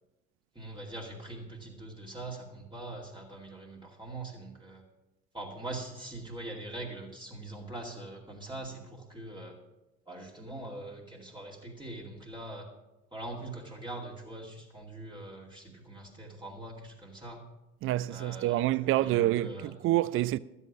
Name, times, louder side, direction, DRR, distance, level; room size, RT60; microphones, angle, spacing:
voice 1, 0.5-4.8 5.3-9.6 10.1-12.7 13.1-17.4 18.1-18.7 19.0-19.7, right 2 dB, 15° right, 2.4 m, -42 dB
voice 2, 17.8-19.5 19.8-20.4, right 15 dB, 40° right, 0.4 m, -27 dB
12.5 x 8.3 x 6.2 m
figure-of-eight pair, 55°, 34 cm